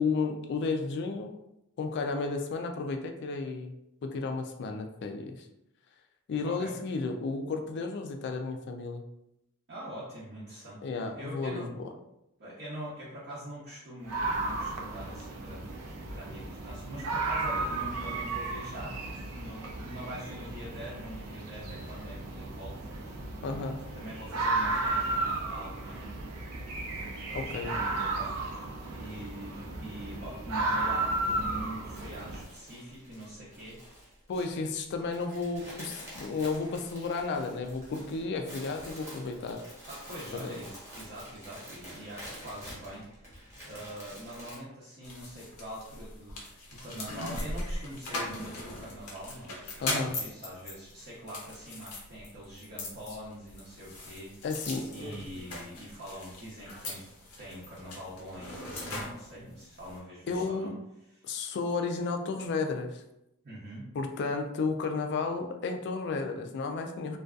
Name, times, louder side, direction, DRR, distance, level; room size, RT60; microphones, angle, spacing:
voice 1, 0.0-1.4 1.8-3.8 4.0-5.5 6.3-9.0 10.8-11.6 23.4-23.8 27.3-27.7 34.3-39.6 49.8-50.1 54.4-54.9 60.3-60.7 61.2-63.0 64.0-67.2, left 4 dB, 50° left, 5 dB, 0.3 m, -32 dB
voice 2, 6.4-6.8 9.7-11.7 12.4-23.2 23.9-26.1 27.2-34.5 39.9-54.6 54.9-60.7 61.1-61.3 63.4-63.9, right 1 dB, 50° right, -9 dB, 0.6 m, -44 dB
sound 1, 14.1-32.4, right 2 dB, 90° right, 0.4 m, -34 dB
sound 2, 31.9-44.6, equal, 10° right, 0.9 m, -48 dB
sound 3, 45.0-60.0, left 2 dB, 80° left, 0.7 m, -40 dB
2.5 x 2.3 x 2.3 m, 0.85 s
head